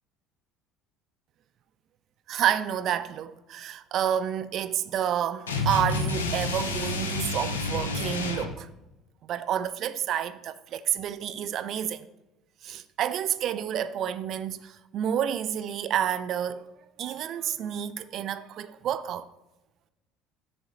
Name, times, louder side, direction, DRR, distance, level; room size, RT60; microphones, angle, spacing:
voice 1, 2.3-8.7 9.2-12.1 12.6-16.7 17.0-19.3, right 10 dB, 45° right, 0.4 m, -29 dB
sound 1, 5.5-8.6, left 3 dB, 75° left, 0.7 m, -29 dB
7.5 x 6.9 x 4.1 m
figure-of-eight pair, 60°, 0 cm